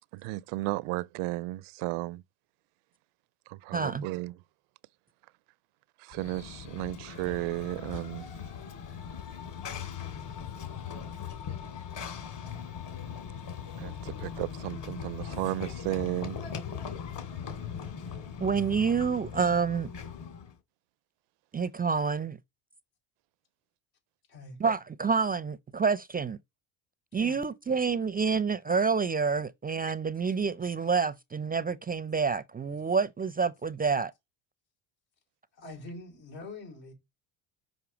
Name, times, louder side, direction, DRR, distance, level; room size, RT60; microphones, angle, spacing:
voice 1, 0.1-2.2 3.5-4.3 6.0-8.2 13.8-16.4, right 19 dB, 80° right, 0.6 m, -34 dB
voice 2, 3.7-4.0 18.4-19.9 21.5-22.4 24.6-26.4 27.1-34.1, right 5 dB, 20° right, 0.4 m, -28 dB
Run / Train, 6.1-20.6, left 7 dB, 55° left, 3.0 m, -40 dB
voice 3, 35.5-36.9, left 2 dB, 85° left, 4.5 m, -44 dB
6.2 x 5.4 x 7.0 m
cardioid pair, 95°, 49 cm